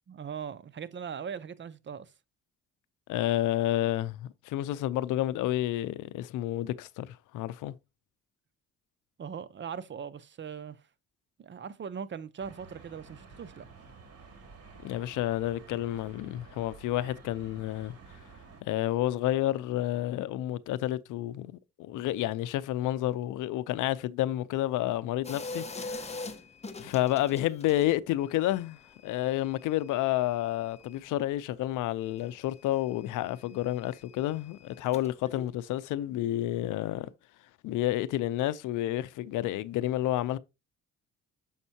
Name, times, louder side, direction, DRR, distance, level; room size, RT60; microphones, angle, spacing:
voice 1, 0.1-2.1 9.2-10.8 11.4-13.7, right 7 dB, 40° right, 0.6 m, -40 dB
voice 2, 3.1-7.7 14.8-18.0 18.6-26.3 26.8-37.1 37.6-40.4, left 14 dB, 85° left, 0.5 m, -30 dB
sound 1, 12.4-18.6, right 4 dB, 55° right, 2.3 m, -51 dB
sound 2, 25.2-27.9 28.2-31.4 31.6-35.4, left 3 dB, 20° left, 1.0 m, -45 dB
7.2 x 5.4 x 2.7 m
cardioid pair, 90°, 30 cm